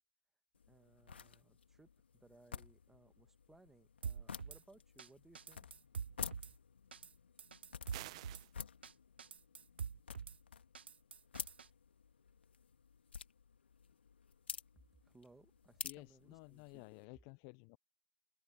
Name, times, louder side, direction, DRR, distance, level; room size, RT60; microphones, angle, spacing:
sound 1, 0.5-17.1, left 6 dB, 65° left, 2.4 m, -51 dB
voice 1, 0.7-5.7 15.0-16.9, right 2 dB, 5° right, 1.8 m, -65 dB
Drum kit / Snare drum, 4.0-4.6 5.0-5.1 5.3-6.5 6.9-7.1 7.4-8.4 8.8-8.9 9.2-10.4 10.7-11.7, right 6 dB, 65° right, 0.7 m, -45 dB
sound 2, 7.9-8.5, right 19 dB, 30° right, 0.4 m, -49 dB
voice 2, 15.8-17.8, left 34 dB, 25° left, 0.6 m, -54 dB
open air
figure-of-eight pair, 135°, 6 cm